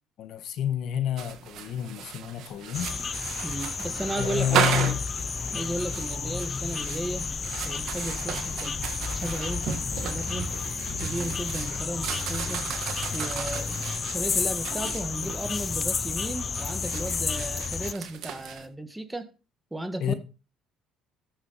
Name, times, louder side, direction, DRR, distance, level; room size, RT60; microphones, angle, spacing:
voice 1, 0.2-2.9 4.2-5.0 20.0-20.1, left 11 dB, 65° left, 1.3 m, -29 dB
sound 1, 1.2-18.6, right 9 dB, 70° right, 1.6 m, -35 dB
sound 2, 2.7-17.9, left 5 dB, 35° left, 0.5 m, -31 dB
voice 2, 3.4-5.0 5.5-10.5 11.0-12.7 13.1-13.9 14.1-19.3 19.7-20.1, right 1 dB, 10° right, 1.5 m, -35 dB
13.0 x 6.6 x 4.1 m
supercardioid pair, 80°, 0 cm